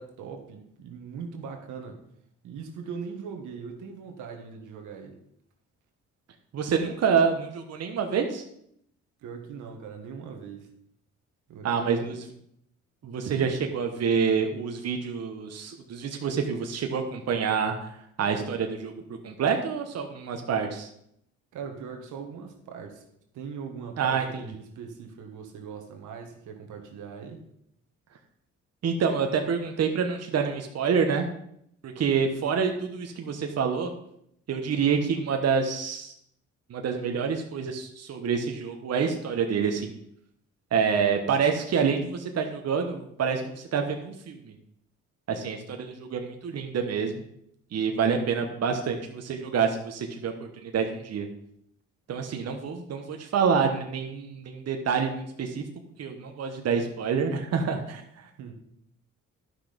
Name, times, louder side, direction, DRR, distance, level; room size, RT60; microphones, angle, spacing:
voice 1, 0.0-2.0 2.4-5.2 9.2-10.7 11.5-12.2 13.3-13.5 21.5-23.0 23.3-27.4 58.4-58.5, right 6 dB, 85° right, 4 dB, 1.6 m, -40 dB
voice 2, 6.5-8.4 11.6-12.2 13.0-18.9 19.2-20.9 24.0-24.2 28.8-31.2 31.8-33.9 34.5-36.1 36.7-40.0 40.7-44.5 45.3-47.2 47.7-51.3 52.1-55.6 56.0-58.3, right 6 dB, 55° right, 4 dB, 1.2 m, -27 dB
11.5 x 6.2 x 5.1 m, 0.73 s
cardioid pair, 90°, 30 cm